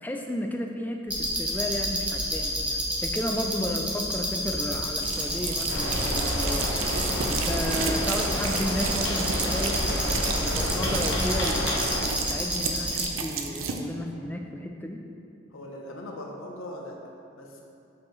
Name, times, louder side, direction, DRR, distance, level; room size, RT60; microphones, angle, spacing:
voice 1, 0.0-6.6 7.3-11.7 12.2-15.0, left 1 dB, 10° left, 2 dB, 0.3 m, -33 dB
sound 1, 1.1-13.0, equal, 5° right, 0.8 m, -30 dB
sound 2, 5.0-13.8, right 6 dB, 85° right, 0.5 m, -33 dB
sound 3, 5.7-12.0, left 1 dB, 60° left, 1.0 m, -29 dB
voice 2, 15.5-17.6, left 1 dB, 90° left, 0 dB, 0.8 m, -40 dB
7.2 x 4.7 x 3.1 m, 2.6 s
head